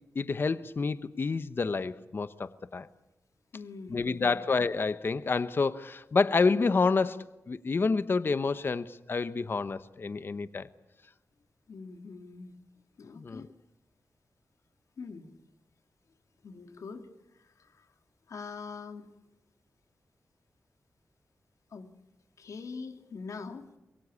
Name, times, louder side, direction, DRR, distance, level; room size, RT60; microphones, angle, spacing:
voice 1, 0.1-2.9 3.9-10.7 13.2-13.5, left 4 dB, 45° left, 13 dB, 0.9 m, -28 dB
voice 2, 3.5-4.4 11.7-12.6 13.0-13.5 15.0-15.3 16.4-17.1 17.4-17.9 18.3-19.1 21.7-21.9 22.4-23.7, left 4 dB, 80° left, 6 dB, 2.5 m, -43 dB
25.5 x 22.5 x 8.5 m, 0.92 s
wide cardioid pair, 130°, 5 cm